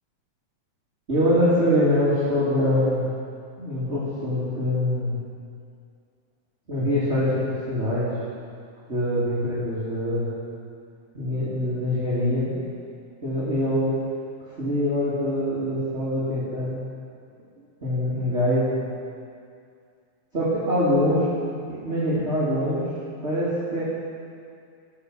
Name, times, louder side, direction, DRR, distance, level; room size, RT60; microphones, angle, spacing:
voice 1, 1.1-3.1 3.6-5.2 6.7-8.1 8.9-10.3 11.1-12.5 13.2-13.9 14.6-16.8 17.8-18.7 20.3-21.3 21.7-22.8 23.2-23.8, left 1 dB, 20° right, -12 dB, 3.0 m, -24 dB
19.0 x 7.0 x 6.6 m, 2.3 s
omnidirectional pair, 3.5 m